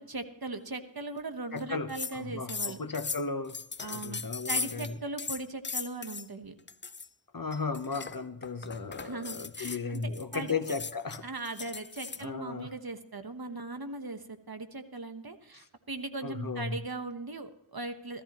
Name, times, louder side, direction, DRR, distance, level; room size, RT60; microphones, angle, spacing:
voice 1, 0.0-2.8 3.8-6.5 9.0-10.0 10.3-10.5 11.2-18.2, right 2 dB, 50° right, 7 dB, 1.2 m, -39 dB
voice 2, 1.5-3.6 3.9-5.0 7.3-11.3 12.2-12.7 15.5-15.6 16.2-16.8, left 4 dB, 45° left, 9 dB, 1.0 m, -35 dB
sound 1, 1.6-1.7 1.9-2.2 2.5-4.9 5.2-6.3 6.7-7.1 7.5-12.2, left 5 dB, 25° left, 0.4 m, -38 dB
16.0 x 14.0 x 3.0 m, 0.82 s
wide cardioid pair, 50°, 47 cm